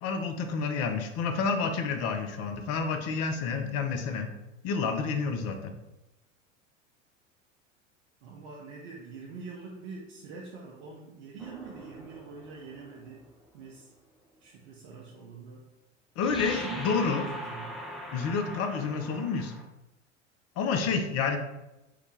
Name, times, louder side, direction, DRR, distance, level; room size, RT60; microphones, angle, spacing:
voice 1, 0.0-4.3 4.6-5.7 16.2-17.2 18.1-19.5 20.6-21.4, left 5 dB, 40° left, 6 dB, 0.6 m, -29 dB
voice 2, 8.2-13.2 13.5-13.9 14.4-15.6 16.5-17.8, right 4 dB, 60° right, -3 dB, 0.8 m, -44 dB
sound 1, 11.4-13.3 16.2-19.6, equal, ahead, 0.5 m, -41 dB
4.9 x 2.2 x 3.2 m, 0.94 s
figure-of-eight pair, 80°, 38 cm